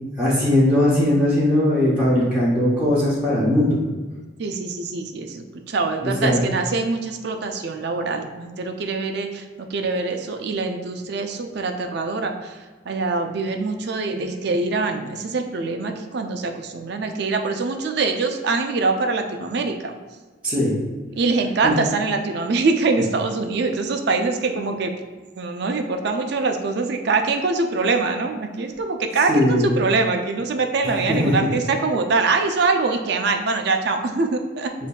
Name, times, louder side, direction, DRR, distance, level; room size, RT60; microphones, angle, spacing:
voice 1, 0.2-3.8 6.0-6.4 20.4-20.8 21.6-21.8 29.3-29.7 30.8-31.5, left 1 dB, 5° right, -9 dB, 0.7 m, -19 dB
voice 2, 4.4-9.4 9.7-12.6 12.9-19.9 21.2-24.9 25.4-34.7, right 3 dB, 55° right, 5 dB, 0.4 m, -24 dB
7.3 x 2.6 x 2.3 m, 1.3 s
head